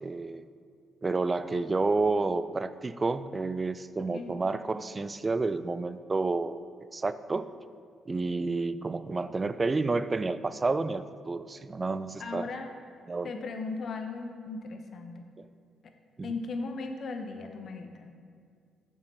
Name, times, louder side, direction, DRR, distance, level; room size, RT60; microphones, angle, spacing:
voice 1, 0.0-0.4 1.0-6.6 6.9-7.5 8.1-12.5 13.1-13.3 15.4-15.5 16.2-16.3, right 3 dB, 30° right, 14 dB, 0.4 m, -30 dB
voice 2, 4.0-4.4 12.2-12.7 13.2-15.3 16.2-18.1, left 3 dB, 60° left, 6 dB, 0.8 m, -37 dB
7.0 x 5.5 x 5.5 m, 2.2 s
supercardioid pair, 55°, 0 cm